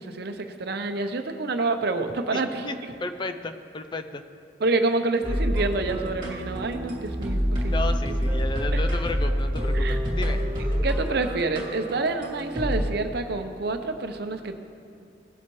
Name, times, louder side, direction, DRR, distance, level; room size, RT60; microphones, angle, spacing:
voice 1, 0.0-2.5 4.6-7.8 9.7-10.0 10.8-14.5, right 3 dB, 60° right, 6 dB, 0.7 m, -27 dB
voice 2, 2.3-4.2 7.7-10.4, left 2 dB, 25° left, 8 dB, 0.4 m, -33 dB
sound 1, 5.2-12.9, equal, 25° right, 2.5 m, -27 dB
18.0 x 7.3 x 3.1 m, 2.6 s
head